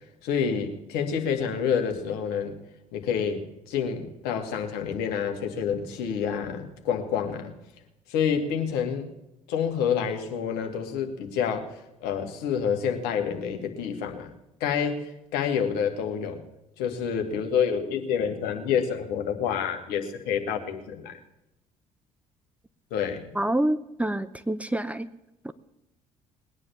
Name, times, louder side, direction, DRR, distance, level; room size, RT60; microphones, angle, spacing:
voice 1, 0.2-2.5 2.9-7.5 8.1-9.1 9.5-14.3 14.6-16.4 16.8-21.2 22.9-23.3, left 7 dB, 65° left, 5 dB, 2.2 m, -28 dB
voice 2, 23.4-25.1 25.4-25.5, right 1 dB, 10° right, 12 dB, 0.9 m, -27 dB
20.5 x 9.9 x 7.2 m, 0.91 s
figure-of-eight pair, 55°, 18 cm